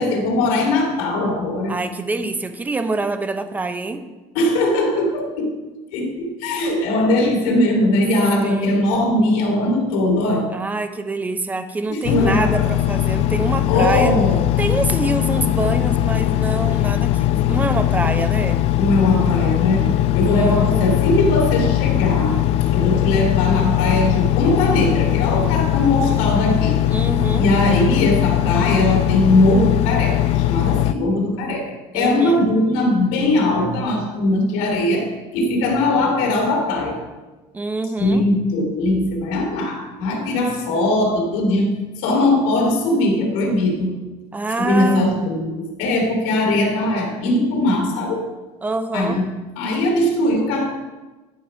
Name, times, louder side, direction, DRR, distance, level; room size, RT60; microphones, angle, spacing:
voice 1, 0.0-1.8 4.3-5.5 5.9-10.5 11.9-12.7 13.7-14.4 17.4-17.6 18.8-19.9 20.1-22.4 22.7-26.8 27.4-37.0 38.0-41.7 42.0-43.9 44.6-48.3 48.9-49.3 49.6-50.7, left 1 dB, 85° left, 0 dB, 2.5 m, -20 dB
voice 2, 1.7-4.0 8.4-8.8 10.5-14.1 14.6-18.7 20.2-20.9 26.9-27.5 31.9-32.4 37.5-38.2 44.3-45.1 48.6-49.2, right 3 dB, 10° right, 9 dB, 0.6 m, -25 dB
Engine, 12.0-30.9, left 13 dB, 50° left, 0.4 m, -19 dB
11.0 x 4.6 x 5.6 m, 1.2 s
cardioid pair, 145°, 13 cm